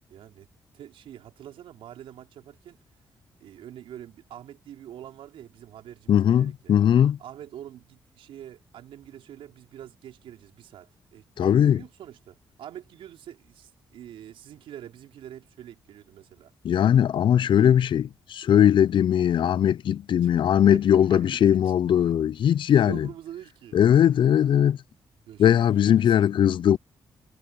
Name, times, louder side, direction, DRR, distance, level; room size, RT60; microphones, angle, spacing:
voice 1, 0.1-0.5 0.7-2.8 3.4-6.7 7.2-16.5 20.2-21.7 22.7-23.8 25.3-26.2, right 11 dB, 75° right, 5.1 m, -45 dB
voice 2, 6.1-7.2 11.4-11.8 16.6-23.1 23.7-24.8 25.4-26.8, left 9 dB, 65° left, 0.5 m, -20 dB
supercardioid pair, 50°, 9 cm